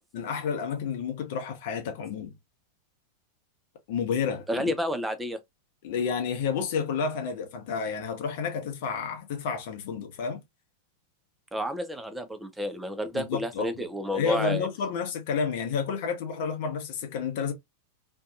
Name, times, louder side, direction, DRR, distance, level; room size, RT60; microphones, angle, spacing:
voice 1, 0.1-2.3 3.9-4.7 5.8-10.4 13.1-13.7 14.1-17.5, left 6 dB, 50° left, 0.7 m, -30 dB
voice 2, 4.5-5.4 11.5-14.7, equal, 5° right, 0.4 m, -30 dB
2.6 x 2.2 x 2.3 m
figure-of-eight pair, 90°, 0 cm